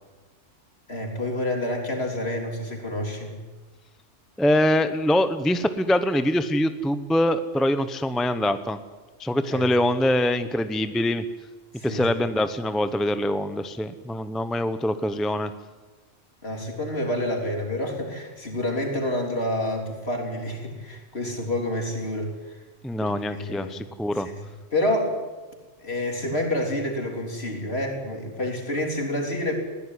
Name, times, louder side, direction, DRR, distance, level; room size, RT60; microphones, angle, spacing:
voice 1, 0.9-3.4 9.4-9.7 11.7-12.2 16.4-22.6 23.0-23.8 24.2-24.4 24.7-25.2 25.8-29.5, left 1 dB, 60° left, 2 dB, 4.1 m, -28 dB
voice 2, 4.4-8.8 9.2-11.2 11.8-15.5 22.8-24.3, left 1 dB, ahead, 11 dB, 0.7 m, -24 dB
21.0 x 16.5 x 9.8 m, 1.3 s
omnidirectional pair, 1.2 m